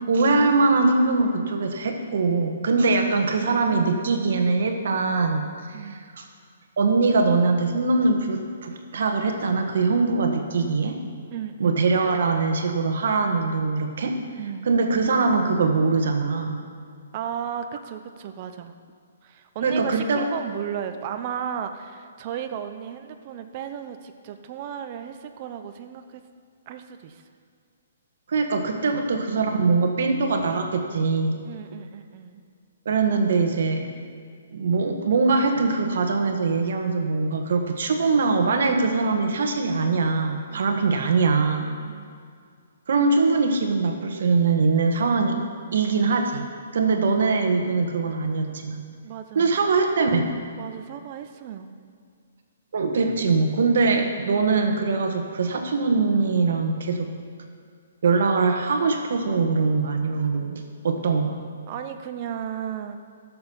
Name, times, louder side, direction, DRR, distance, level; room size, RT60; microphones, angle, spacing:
voice 1, 0.1-5.8 6.2-6.3 6.8-11.0 11.6-14.2 14.7-16.6 19.6-20.3 28.3-31.4 32.8-33.9 34.5-41.8 42.9-45.4 45.7-46.4 46.7-48.8 49.3-50.3 52.7-57.1 58.0-61.4, right 4 dB, 60° right, 4 dB, 1.5 m, -22 dB
voice 2, 11.3-11.8 14.4-14.7 17.1-18.8 19.2-26.2 26.7-27.2 29.3-29.4 31.4-32.4 40.5-40.8 41.8-42.1 49.0-49.7 50.6-51.7 61.7-63.0, right 8 dB, 30° right, 7 dB, 0.7 m, -35 dB
13.0 x 7.1 x 5.6 m, 2.2 s
hypercardioid pair, 165°, 0 cm